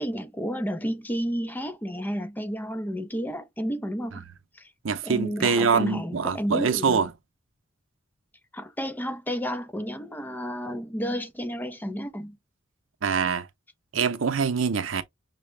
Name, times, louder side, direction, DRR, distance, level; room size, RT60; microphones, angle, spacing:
voice 1, 0.0-4.2 4.5-4.7 5.0-7.1 8.5-12.4, equal, 10° left, 0.5 m, -31 dB
voice 2, 4.8-7.1 13.0-13.5 13.9-15.0, right 5 dB, 80° right, 0.7 m, -24 dB
6.1 x 2.1 x 3.2 m
head